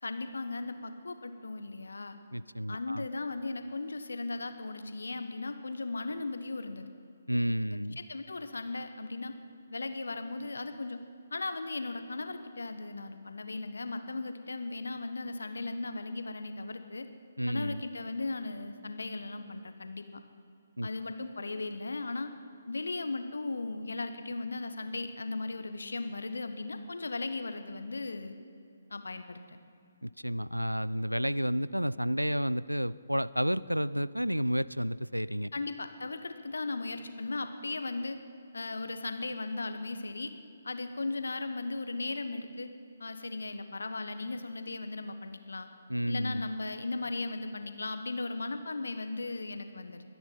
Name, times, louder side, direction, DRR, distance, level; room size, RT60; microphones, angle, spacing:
voice 1, 0.0-2.2 2.7-6.8 7.7-9.3 9.7-11.0 11.3-17.1 17.5-20.2 20.8-22.3 22.7-28.4 28.9-29.6 35.5-38.2 38.5-40.3 40.6-42.7 43.0-45.7 46.1-50.0, left 3 dB, 65° left, 9 dB, 1.3 m, -37 dB
voice 2, 2.3-3.0 7.3-8.0 17.4-17.8 20.8-20.9 30.0-35.5 45.9-46.5, equal, 90° right, 19 dB, 0.4 m, -31 dB
23.5 x 10.5 x 5.6 m, 2.5 s
figure-of-eight pair, 135°, 0 cm